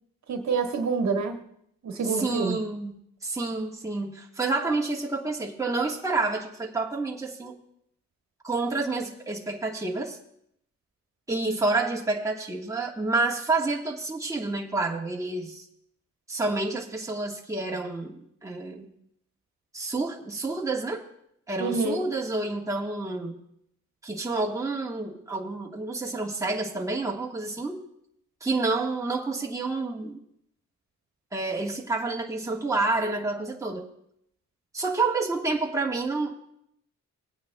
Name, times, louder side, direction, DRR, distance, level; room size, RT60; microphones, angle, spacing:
voice 1, 0.3-1.4 1.8-2.6 21.6-22.0, right 4 dB, 60° right, 4 dB, 1.3 m, -27 dB
voice 2, 2.0-3.0 3.2-7.6 8.4-10.2 11.3-15.6 16.3-18.9 19.7-21.0 21.5-23.3 24.0-27.8 28.4-30.2 31.3-33.9 34.7-36.3, right 3 dB, 10° right, 0 dB, 1.3 m, -29 dB
21.0 x 9.2 x 2.2 m, 0.73 s
cardioid pair, 95°, 32 cm